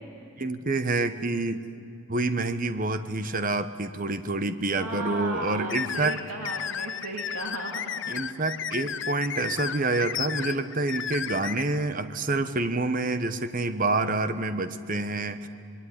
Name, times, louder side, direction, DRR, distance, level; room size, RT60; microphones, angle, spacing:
voice 1, 0.4-1.7 2.1-6.2 8.1-15.5, right 2 dB, 40° right, 11 dB, 1.1 m, -27 dB
voice 2, 4.8-8.4, right 2 dB, 85° right, 2 dB, 2.4 m, -36 dB
sound 1, 5.7-11.6, left 8 dB, 55° left, 0.9 m, -33 dB
25.5 x 22.0 x 9.9 m, 2.4 s
head